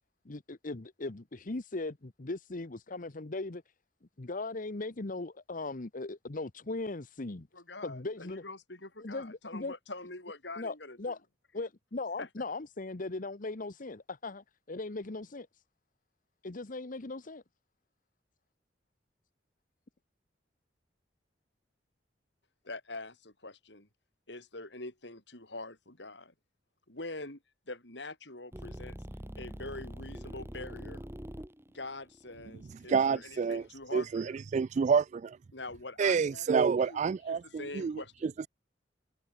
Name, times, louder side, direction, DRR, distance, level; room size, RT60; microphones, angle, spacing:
voice 1, 0.2-3.6 4.2-7.5 7.8-8.4 9.0-9.7 10.6-11.2 11.5-15.6 16.4-17.4, left 2 dB, 50° left, 1.0 m, -38 dB
voice 2, 7.5-11.1 12.2-12.3 22.6-23.9 24.3-26.3 26.9-27.4 27.7-29.0 29.4-31.1 31.7-34.4 35.5-38.3, left 2 dB, 70° left, 6.4 m, -44 dB
sound 1, 28.5-33.7, equal, 15° right, 2.4 m, -44 dB
voice 3, 32.9-33.6 33.9-35.4 36.0-38.5, right 6 dB, 40° right, 0.3 m, -28 dB
head